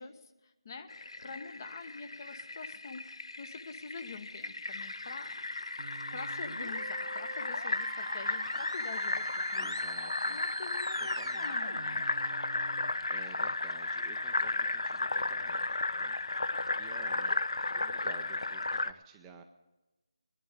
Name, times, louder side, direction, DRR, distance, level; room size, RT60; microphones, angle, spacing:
voice 1, 0.0-5.4 6.1-9.8 10.3-12.0, left 4 dB, 35° left, 8 dB, 1.0 m, -46 dB
Fill (with liquid), 0.9-18.9, left 2 dB, 75° left, 0.5 m, -34 dB
sound 1, 5.8-12.9, right 4 dB, 55° right, 0.8 m, -46 dB
voice 2, 9.5-10.4 11.0-11.7 13.1-16.5 16.7-17.3 17.7-19.4, right 6 dB, 10° right, 3 dB, 0.5 m, -53 dB
19.5 x 11.0 x 5.1 m, 1.1 s
figure-of-eight pair, 165°, 3 cm